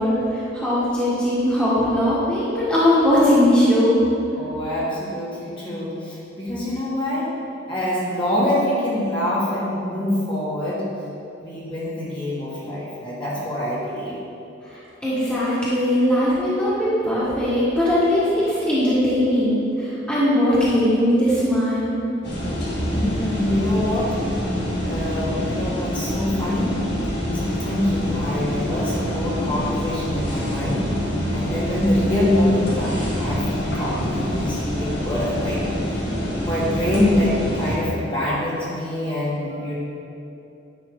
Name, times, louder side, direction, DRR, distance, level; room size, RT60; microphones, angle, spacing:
voice 1, 0.0-4.1 14.6-22.0, left 1 dB, 5° left, -10 dB, 1.7 m, -20 dB
voice 2, 4.4-7.3 7.7-10.9 11.4-14.2 22.8-24.2 24.8-26.8 27.3-30.9 31.3-39.7, left 1 dB, 25° left, -8 dB, 1.8 m, -25 dB
sound 1, 22.2-37.8, equal, 60° left, 1.7 m, -26 dB
10.0 x 5.7 x 3.8 m, 2.7 s
head